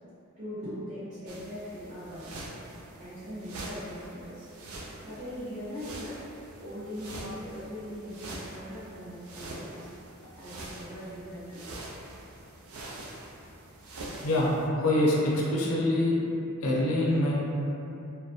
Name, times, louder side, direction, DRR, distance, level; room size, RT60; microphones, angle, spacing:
voice 1, 0.4-2.5 3.0-4.5 5.0-6.2 6.6-9.9 10.3-11.7, equal, 35° right, -19 dB, 0.9 m, -40 dB
sound 1, 1.3-14.7, right 1 dB, 75° right, 0.4 m, -44 dB
voice 2, 14.2-16.1 16.6-17.3, left 1 dB, 70° left, -4 dB, 0.5 m, -25 dB
2.4 x 2.0 x 2.6 m, 2.8 s
head